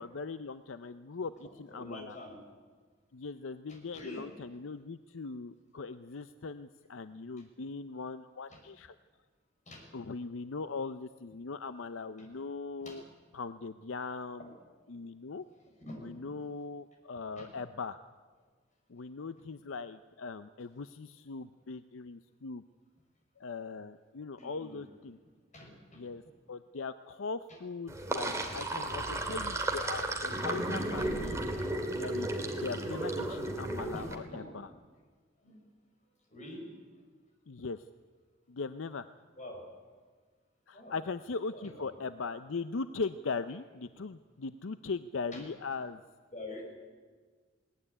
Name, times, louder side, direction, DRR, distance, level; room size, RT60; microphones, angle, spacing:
voice 1, 0.0-2.2 3.1-9.0 9.9-13.0 13.3-14.5 14.9-15.4 16.0-18.0 18.9-22.6 23.4-25.2 26.0-26.2 26.5-31.4 31.9-34.7 37.5-37.8 38.5-39.1 40.7-46.0, left 4 dB, 80° left, 12 dB, 0.6 m, -40 dB
voice 2, 1.7-2.4 3.7-4.3 8.5-8.6 9.7-9.9 12.2-12.3 12.8-13.0 14.4-14.5 15.8-16.1 17.4-17.5 24.4-24.9 25.5-26.0 29.3-29.4 33.2-33.4 33.7-34.6 35.4-35.6 36.3-36.6 36.9-37.0 39.4-39.6 40.7-41.0 41.5-42.0 45.3-45.4 46.3-46.6, left 1 dB, 40° left, 1 dB, 6.3 m, -46 dB
Sink (filling or washing), 27.9-34.1, right 1 dB, 15° right, 2.5 m, -34 dB
20.5 x 18.0 x 9.9 m, 1.5 s
head